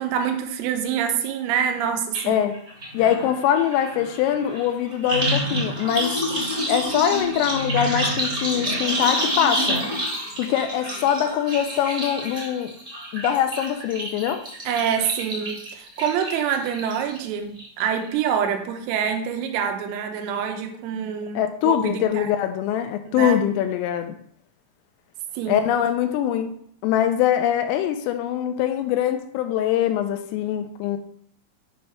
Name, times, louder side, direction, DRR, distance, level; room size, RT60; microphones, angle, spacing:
voice 1, 0.0-2.4 14.7-22.3 23.1-23.4 25.4-25.6, right 8 dB, 85° right, 5 dB, 3.5 m, -26 dB
sound 1, 2.1-2.2 2.5-17.2 17.6-18.0 18.3-18.4, equal, 25° right, 1.1 m, -28 dB
voice 2, 2.3-2.6 2.9-6.2 6.7-9.8 10.4-12.7 13.1-14.4 21.4-24.2 25.5-26.5 26.8-31.0, left 10 dB, 85° left, 8 dB, 3.1 m, -23 dB
8.4 x 3.2 x 5.6 m, 0.66 s
omnidirectional pair, 6.0 m